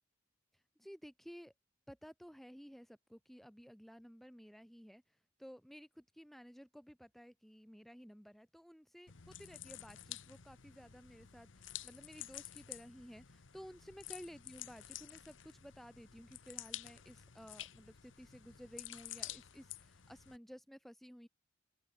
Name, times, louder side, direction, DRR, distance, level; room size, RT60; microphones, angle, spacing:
voice 1, 0.5-1.5 1.9-21.3, equal, ahead, 2.2 m, -55 dB
sound 1, 9.1-20.4, left 13 dB, 70° left, 1.0 m, -50 dB
open air
head